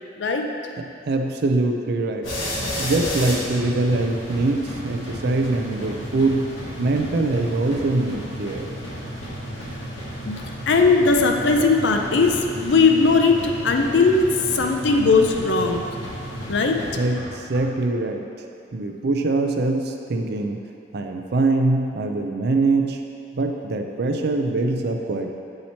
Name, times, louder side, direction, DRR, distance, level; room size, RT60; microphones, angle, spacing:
voice 1, 0.2-0.5 10.2-10.4 10.7-14.3 14.5-15.9 16.5-16.8, left 4 dB, 65° left, 3 dB, 0.5 m, -18 dB
voice 2, 1.1-2.2 2.8-6.5 6.8-8.7 17.0-18.2 18.7-20.6 20.9-23.0 23.3-25.3, right 2 dB, 55° right, 4 dB, 0.4 m, -23 dB
tha beateder, 2.2-17.6, equal, 85° left, 1.3 m, -33 dB
7.6 x 2.9 x 4.3 m, 2.5 s
head